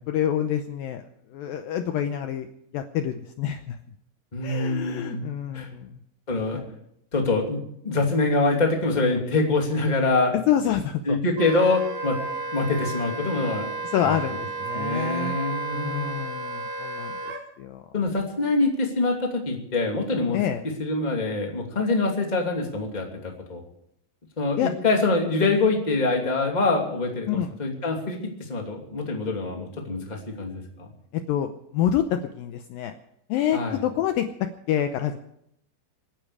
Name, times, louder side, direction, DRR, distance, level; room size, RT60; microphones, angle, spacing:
voice 1, 0.1-2.5 2.7-3.8 4.4-6.0 6.5-6.7 10.5-11.2 13.9-15.4 15.7-17.8 20.3-20.6 24.6-24.7 27.3-27.5 31.1-32.9 33.3-35.2, left 10 dB, 85° left, 7 dB, 2.0 m, -27 dB
voice 2, 4.3-5.2 5.5-5.7 6.3-6.6 7.1-10.3 11.0-12.2 12.5-13.7 14.0-14.2 14.7-16.2 17.9-20.4 20.8-23.6 24.4-30.9 33.5-33.8, left 3 dB, 15° left, 1 dB, 1.7 m, -25 dB
Wind instrument woodwind instrument, 11.4-17.4, right 3 dB, 70° right, 4.3 m, -32 dB
27.0 x 10.0 x 4.9 m, 0.74 s
omnidirectional pair, 5.1 m